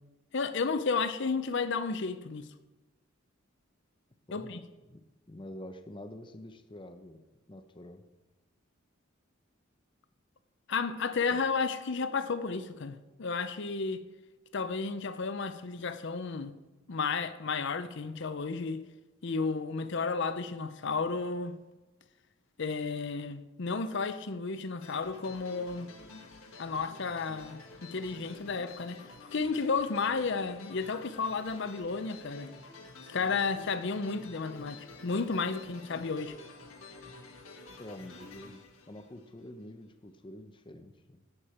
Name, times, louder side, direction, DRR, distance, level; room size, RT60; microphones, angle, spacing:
voice 1, 0.3-2.5 4.3-4.6 10.7-14.0 14.5-16.5 16.9-18.8 19.2-21.6 22.6-25.9 26.6-29.0 29.3-32.5 33.1-34.8 35.0-36.4, left 4 dB, 60° left, 0.6 m, -32 dB
voice 2, 4.3-8.0 11.3-11.4 37.8-38.6 38.9-41.2, left 1 dB, 25° left, 0.7 m, -47 dB
sound 1, 24.8-39.6, left 3 dB, 80° left, 1.4 m, -50 dB
11.5 x 8.6 x 4.4 m
head